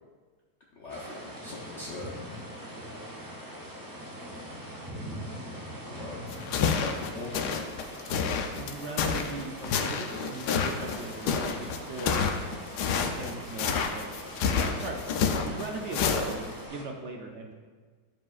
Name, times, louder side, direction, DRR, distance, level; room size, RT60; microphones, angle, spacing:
voice 1, 0.7-2.1 5.9-6.2 6.7-7.4, left 2 dB, 50° left, -4 dB, 1.0 m, -40 dB
sound 1, 0.9-16.8, equal, 35° right, 0.3 m, -42 dB
voice 2, 2.7-3.0 8.5-12.3 13.2-15.0 15.4-17.5, right 3 dB, 75° right, 1 dB, 0.6 m, -39 dB
sound 2, 6.3-16.6, left 6 dB, 75° left, 1.1 m, -29 dB
12.0 x 4.8 x 2.4 m, 1.5 s
omnidirectional pair, 1.8 m